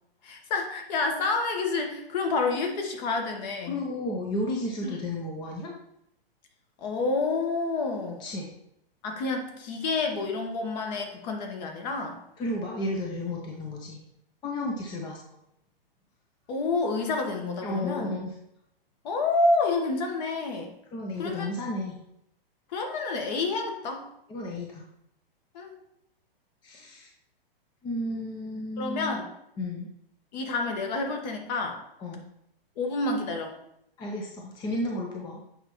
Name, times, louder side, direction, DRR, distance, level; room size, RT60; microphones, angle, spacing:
voice 1, 0.2-3.8 4.8-5.0 6.8-8.3 9.0-12.2 16.5-18.1 19.0-20.7 21.2-21.5 22.7-24.0 25.5-25.8 28.8-29.3 30.3-31.8 32.8-33.5, left 3 dB, 45° left, 3 dB, 1.3 m, -29 dB
voice 2, 3.7-5.7 8.2-8.5 12.4-14.0 14.4-15.2 17.6-18.3 20.9-22.0 24.3-24.8 26.6-27.1 27.8-29.2 29.6-29.9 32.0-32.2 34.0-35.4, left 1 dB, 15° left, 0 dB, 0.6 m, -32 dB
7.8 x 5.1 x 3.1 m, 0.79 s
hypercardioid pair, 145°, 30 cm